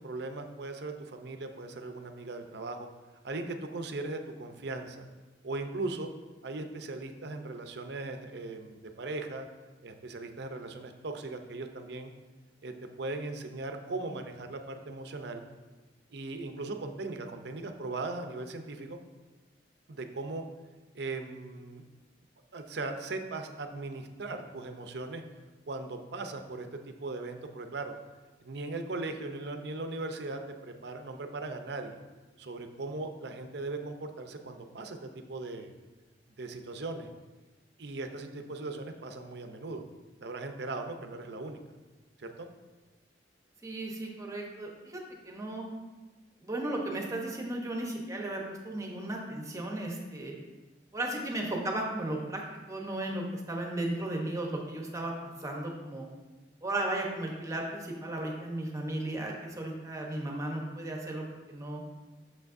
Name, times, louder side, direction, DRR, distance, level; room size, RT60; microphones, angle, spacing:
voice 1, 0.0-2.9 3.2-5.1 5.4-6.1 6.4-9.5 9.8-12.1 12.6-15.4 16.1-19.0 19.9-20.4 20.9-21.8 22.5-25.2 25.7-27.9 28.4-32.0 32.4-35.7 36.4-37.1 37.8-39.8 40.2-41.6 42.2-42.5, right 2 dB, 65° right, 6 dB, 0.6 m, -38 dB
voice 2, 43.6-45.0 45.2-45.6 46.4-50.3 50.9-52.4 52.7-56.0 56.6-61.8, right 1 dB, 20° right, 0 dB, 0.9 m, -35 dB
8.3 x 6.9 x 2.6 m, 1.2 s
head